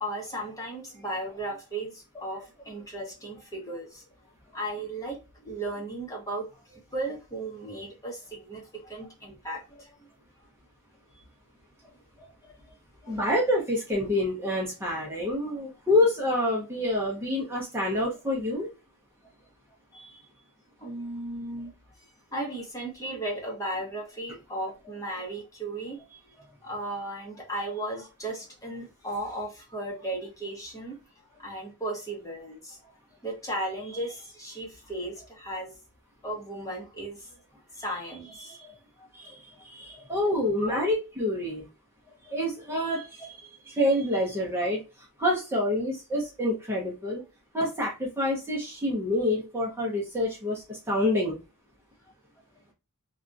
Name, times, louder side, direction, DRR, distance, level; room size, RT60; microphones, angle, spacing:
voice 1, 0.0-4.0 4.5-10.0 11.8-11.9 12.2-12.7 13.0-13.3 19.9-20.2 20.8-21.7 22.3-31.0 31.4-32.9 33.2-35.7 36.2-37.4 37.8-39.4 39.9-40.0 40.6-40.8 42.1-42.3, right 1 dB, 15° left, -2 dB, 1.0 m, -36 dB
voice 2, 13.1-18.7 39.1-39.3 39.6-41.7 42.3-43.3 43.7-44.8 45.2-47.2 47.5-51.4, left 1 dB, 10° right, -4 dB, 0.9 m, -27 dB
2.8 x 2.4 x 2.5 m, 0.29 s
head